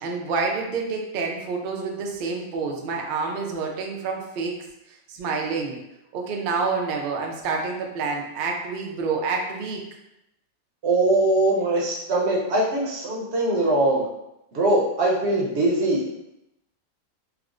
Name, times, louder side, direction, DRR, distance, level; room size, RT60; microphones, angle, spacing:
voice 1, 0.0-4.6 4.9-5.8 6.1-9.8, right 4 dB, 85° right, 0 dB, 0.4 m, -28 dB
voice 2, 10.8-14.1 14.5-16.2, right 2 dB, 60° right, -2 dB, 0.8 m, -22 dB
4.5 x 2.0 x 2.4 m, 0.86 s
omnidirectional pair, 1.6 m